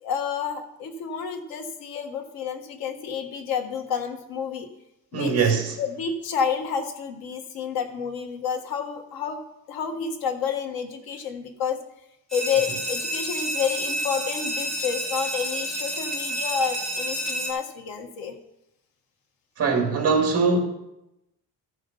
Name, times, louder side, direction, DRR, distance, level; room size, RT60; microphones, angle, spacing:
voice 1, 0.0-4.7 5.1-5.5 5.8-11.8 12.3-18.3, left 6 dB, 85° left, 1.7 m, -30 dB
voice 2, 5.1-5.7 19.6-20.6, right 4 dB, 40° right, 2.3 m, -21 dB
sound 1, 12.3-17.5, equal, ahead, 2.4 m, -29 dB
14.0 x 6.3 x 5.5 m
cardioid pair, 175°, 35 cm